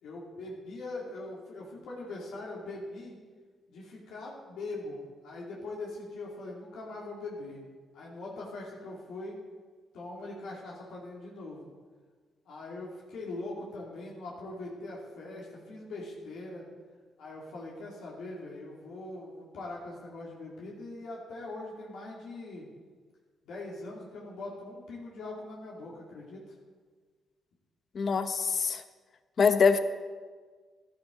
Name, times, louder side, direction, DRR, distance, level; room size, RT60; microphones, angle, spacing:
voice 1, 0.0-3.1 3.7-7.6 7.9-9.4 9.9-11.7 12.5-16.6 17.2-22.7 23.5-26.4, left 2 dB, 80° left, -4 dB, 2.7 m, -41 dB
voice 2, 27.9-28.8 29.4-29.8, left 5 dB, 55° left, 10 dB, 0.9 m, -24 dB
12.0 x 11.5 x 3.9 m, 1.5 s
supercardioid pair, 65°, 0 cm